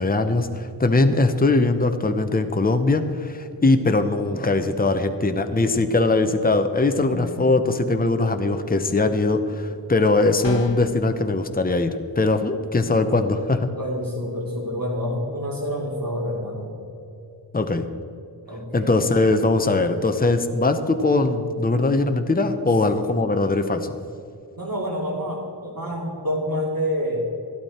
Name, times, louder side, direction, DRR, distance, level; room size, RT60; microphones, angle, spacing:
voice 1, 0.0-13.7 17.5-17.9 18.7-24.0, left 2 dB, 20° left, 8 dB, 0.8 m, -21 dB
sound 1, 10.4-11.0, left 6 dB, 85° left, 0.9 m, -32 dB
voice 2, 13.8-16.7 18.5-19.0 22.9-23.0 24.6-27.2, equal, 50° right, -2 dB, 2.8 m, -28 dB
12.5 x 12.0 x 4.3 m, 2.7 s
wide cardioid pair, 65°, 43 cm